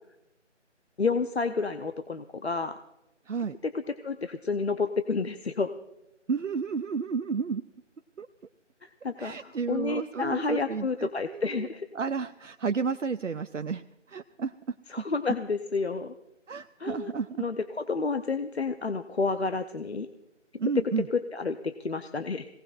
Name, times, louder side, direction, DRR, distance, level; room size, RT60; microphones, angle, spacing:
voice 1, 1.0-2.8 3.7-5.7 8.8-11.9 14.9-16.1 16.8-17.1 17.4-20.1 21.1-22.5, left 4 dB, 60° left, 9 dB, 0.9 m, -30 dB
voice 2, 3.3-3.6 6.3-7.6 8.2-8.3 9.2-11.7 11.9-15.0 16.5-17.4 20.6-21.1, right 5 dB, 80° right, 10 dB, 0.7 m, -32 dB
26.5 x 18.0 x 2.5 m, 0.89 s
figure-of-eight pair, 165°, 37 cm